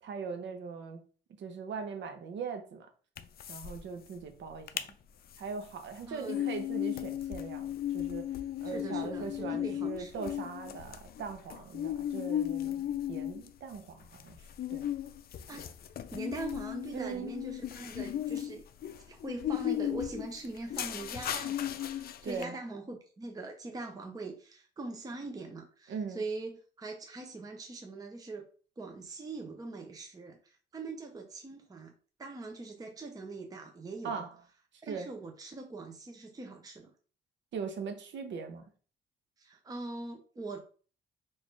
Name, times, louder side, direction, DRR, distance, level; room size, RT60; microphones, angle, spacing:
voice 1, 0.0-1.0 1.4-2.9 3.5-4.9 5.4-8.3 8.6-14.9 16.9-17.4 22.2-22.6 25.9-26.2 34.0-34.3 34.9-35.1 37.5-38.6, right 5 dB, 65° right, 0.7 m, -40 dB
sound 1, 3.2-3.8 4.1-4.2 4.5-4.9 5.3-22.4, left 11 dB, 50° left, 0.4 m, -36 dB
voice 2, 6.1-6.5 8.6-10.1 15.3-15.7 16.1-28.5 28.8-31.9 32.2-34.2 34.8-36.9 39.4-40.6, right 3 dB, 20° right, 0.6 m, -42 dB
4.0 x 2.5 x 3.2 m
cardioid pair, 90°, 20 cm